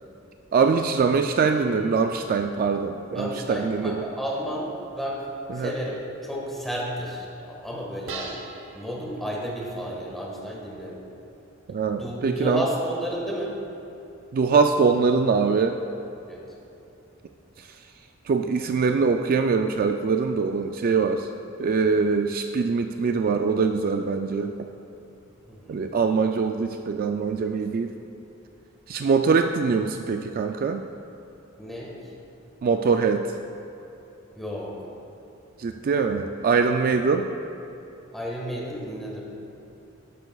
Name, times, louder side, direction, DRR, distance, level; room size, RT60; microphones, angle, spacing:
voice 1, 0.5-4.0 5.5-5.7 11.7-12.6 14.3-15.8 17.6-17.7 18.3-21.3 21.6-24.5 25.7-27.9 28.9-30.8 32.6-33.2 35.6-37.3, right 5 dB, 45° right, 6 dB, 0.3 m, -23 dB
sound 1, 1.4-3.5 8.1-9.9, right 4 dB, 65° right, 0.8 m, -43 dB
voice 2, 3.1-5.3 5.5-8.4 8.7-11.0 12.0-13.6 16.3-16.4 25.5-25.8 31.6-32.1 34.4-34.9 38.1-39.2, equal, ahead, -4 dB, 1.6 m, -32 dB
12.5 x 9.9 x 2.3 m, 2.9 s
head